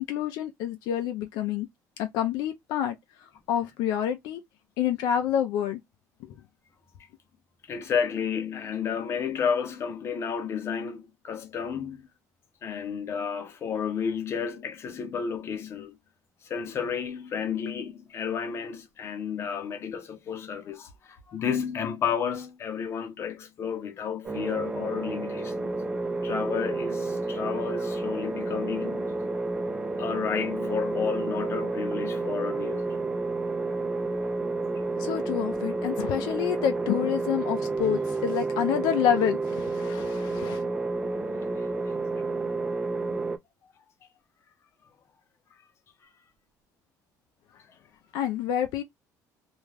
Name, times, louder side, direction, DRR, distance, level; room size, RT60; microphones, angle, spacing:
voice 1, 0.0-1.7 2.0-3.0 3.5-4.4 4.8-5.8 6.2-6.3 35.0-40.6 48.1-48.8, left 9 dB, 75° left, 0.4 m, -28 dB
voice 2, 7.7-12.1 12.6-16.0 16.4-25.7 26.2-29.1 30.0-32.9, left 7 dB, 40° left, 0.6 m, -31 dB
sound 1, 24.2-43.4, right 3 dB, 15° right, 0.4 m, -30 dB
2.4 x 2.2 x 3.1 m
cardioid pair, 145°, 7 cm